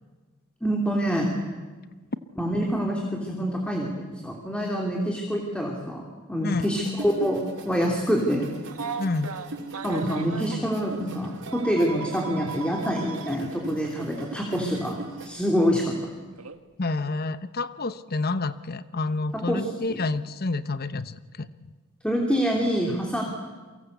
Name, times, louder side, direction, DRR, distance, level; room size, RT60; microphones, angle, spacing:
voice 1, 0.6-1.3 2.4-8.5 9.8-15.9 19.3-19.6 19.9-20.0 22.0-23.2, equal, 5° left, 0 dB, 3.3 m, -26 dB
sound 1, 6.6-15.3, right 2 dB, 60° right, 5.0 m, -40 dB
Telephone, 8.7-10.6 11.5-13.4 14.7-14.9 16.4-16.6, right 5 dB, 80° right, 1.7 m, -37 dB
voice 2, 9.0-9.3 16.8-21.5, left 3 dB, 45° left, 13 dB, 1.0 m, -28 dB
30.0 x 23.5 x 8.2 m, 1.3 s
head